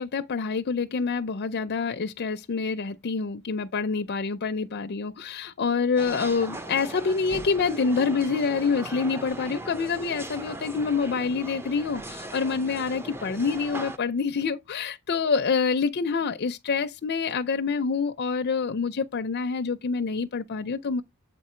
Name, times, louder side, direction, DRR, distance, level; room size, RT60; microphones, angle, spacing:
voice 1, 0.0-21.0, left 5 dB, 50° left, 0.5 m, -27 dB
sound 1, 6.0-14.0, right 1 dB, 10° right, 0.5 m, -39 dB
7.8 x 3.7 x 4.3 m
head